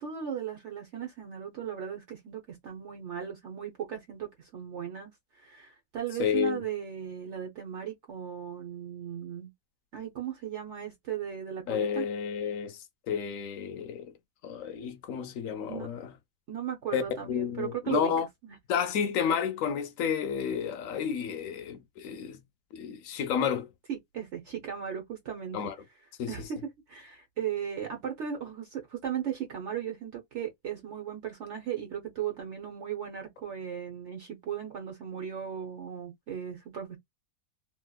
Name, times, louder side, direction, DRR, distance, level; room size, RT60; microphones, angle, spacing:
voice 1, 0.0-9.5 9.9-12.0 15.7-15.9 16.5-18.1 18.4-18.6 23.9-25.6 26.3-26.6 26.9-37.0, right 9 dB, 60° right, 1.1 m, -37 dB
voice 2, 6.2-6.6 11.7-12.8 13.1-14.1 14.4-16.1 16.9-18.3 18.7-22.4 22.7-23.7 25.5-25.8 26.2-26.3, left 7 dB, 75° left, 1.0 m, -31 dB
2.9 x 2.7 x 2.3 m
omnidirectional pair, 1.4 m